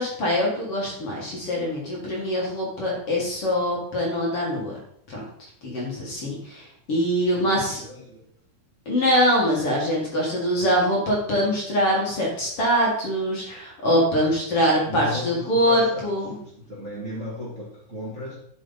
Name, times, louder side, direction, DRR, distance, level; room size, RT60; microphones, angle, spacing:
voice 1, 0.0-4.7 5.1-5.2 5.6-7.8 8.9-16.3, equal, 45° left, -3 dB, 2.4 m, -23 dB
voice 2, 7.3-8.3 14.1-16.1 16.3-18.3, left 1 dB, 25° right, -6 dB, 1.7 m, -36 dB
11.0 x 5.6 x 4.0 m, 0.69 s
omnidirectional pair, 4.2 m